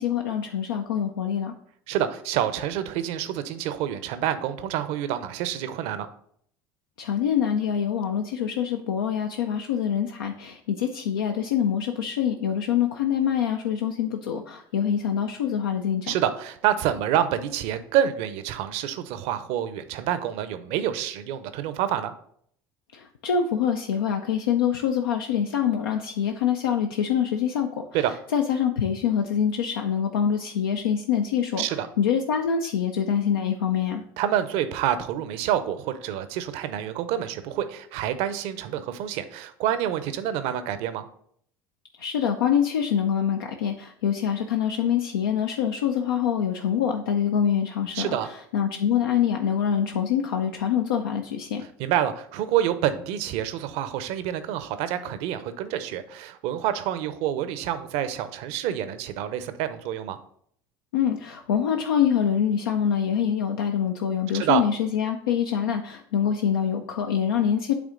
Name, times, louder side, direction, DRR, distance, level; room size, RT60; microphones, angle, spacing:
voice 1, 0.0-1.5 7.0-16.1 22.9-27.8 28.3-31.6 32.0-34.0 42.0-48.2 48.5-51.6 60.9-67.7, left 8 dB, 85° left, 3 dB, 0.5 m, -25 dB
voice 2, 1.9-6.1 16.0-22.1 27.9-28.1 31.6-31.9 34.2-41.1 47.9-48.3 51.8-60.2 64.3-64.6, right 10 dB, 65° right, 11 dB, 0.7 m, -27 dB
8.5 x 3.4 x 3.8 m, 0.64 s
hypercardioid pair, 75°, 11 cm